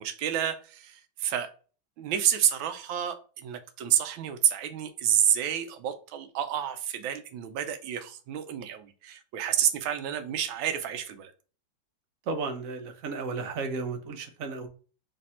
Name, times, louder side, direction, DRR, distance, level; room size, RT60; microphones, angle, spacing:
voice 1, 0.0-1.5 2.0-11.3, right 10 dB, 85° right, 1.4 m, -29 dB
voice 2, 12.2-14.7, right 4 dB, 65° right, 0.9 m, -33 dB
3.4 x 3.3 x 4.1 m
omnidirectional pair, 2.1 m